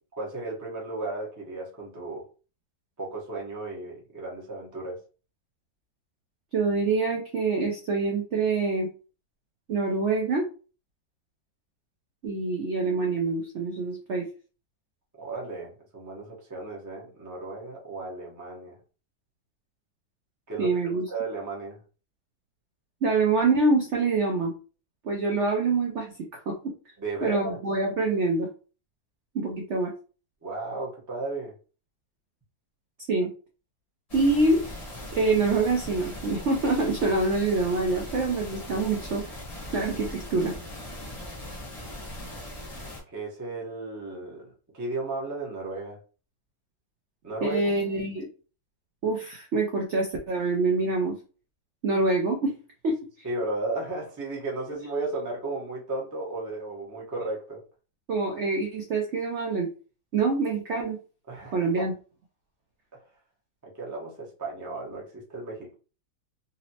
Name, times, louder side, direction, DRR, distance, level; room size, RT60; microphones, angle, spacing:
voice 1, 0.2-2.2 3.0-5.0 15.2-18.7 20.5-20.8 21.1-21.8 27.0-27.6 30.4-31.5 43.1-46.0 47.2-47.6 53.2-57.6 61.3-61.5 63.6-65.7, right 2 dB, 20° right, -3 dB, 0.4 m, -34 dB
voice 2, 6.5-8.9 9.7-10.5 12.2-14.3 20.6-21.0 23.0-24.5 25.0-26.7 27.2-28.5 29.3-29.9 33.1-33.3 34.1-34.6 35.1-39.2 39.7-40.5 47.4-48.3 49.0-51.2 51.8-52.5 52.8-53.0 58.1-59.7 60.1-61.0 61.5-61.9, right 3 dB, 75° right, 1 dB, 0.6 m, -25 dB
sound 1, 34.1-43.0, left 1 dB, 30° left, 0.8 m, -39 dB
4.0 x 2.0 x 2.7 m, 0.36 s
omnidirectional pair, 1.9 m